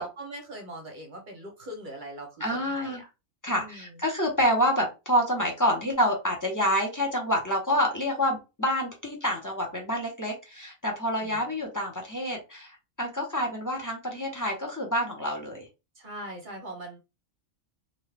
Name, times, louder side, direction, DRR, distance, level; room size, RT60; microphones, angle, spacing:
voice 1, 0.0-3.0 3.5-4.0 11.2-11.5 15.9-17.0, right 1 dB, 45° right, 2 dB, 0.8 m, -41 dB
voice 2, 2.4-3.0 3.4-15.7, equal, 15° left, 0 dB, 0.7 m, -27 dB
2.7 x 2.3 x 3.3 m, 0.27 s
omnidirectional pair, 1.4 m